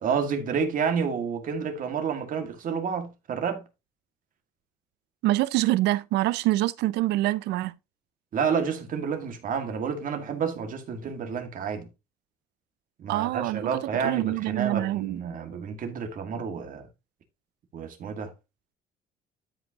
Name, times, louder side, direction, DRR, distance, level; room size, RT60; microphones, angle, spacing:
voice 1, 0.0-3.6 8.3-11.9 13.0-16.9 17.7-18.3, right 6 dB, 55° right, 2.0 m, -30 dB
voice 2, 5.2-7.7 13.1-15.2, right 16 dB, 85° right, 0.5 m, -25 dB
12.5 x 5.3 x 2.9 m
cardioid pair, 110°, 17 cm